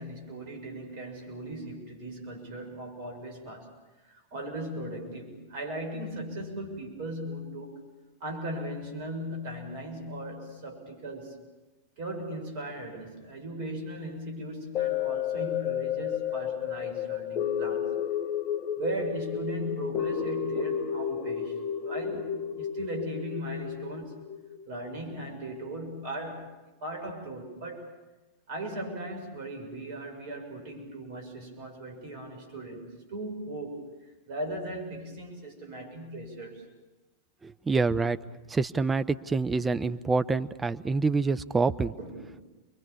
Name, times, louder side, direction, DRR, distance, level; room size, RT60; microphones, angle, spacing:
voice 1, 0.0-3.7 4.1-7.8 8.2-11.4 12.0-17.9 18.8-24.2 24.7-26.5 26.8-27.9 28.5-36.7 42.0-42.4, right 1 dB, 50° right, 3 dB, 6.7 m, -38 dB
sound 1, 14.7-25.1 25.6-25.7, left 9 dB, 30° left, 1.3 m, -32 dB
voice 2, 37.4-38.2 38.5-41.9, right 4 dB, 15° right, 12 dB, 0.8 m, -26 dB
29.0 x 23.0 x 7.2 m, 1.1 s
figure-of-eight pair, 90°, 0 cm